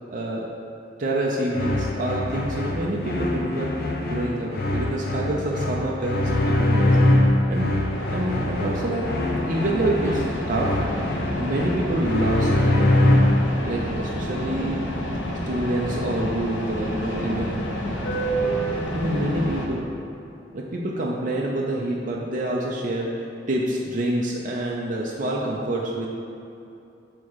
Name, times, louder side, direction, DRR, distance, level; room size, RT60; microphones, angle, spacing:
voice 1, 0.1-0.5 1.0-7.0 7.5-7.8 8.1-9.2 9.5-10.8 11.4-12.8 13.6-14.8 15.5-17.8 18.9-19.9 20.5-26.1, right 1 dB, 45° right, -3 dB, 0.6 m, -27 dB
sound 1, 1.5-13.5, left 1 dB, 55° left, 0.8 m, -23 dB
sound 2, 7.9-19.7, equal, 90° left, 1.1 m, -29 dB
6.7 x 3.6 x 6.2 m, 2.8 s
head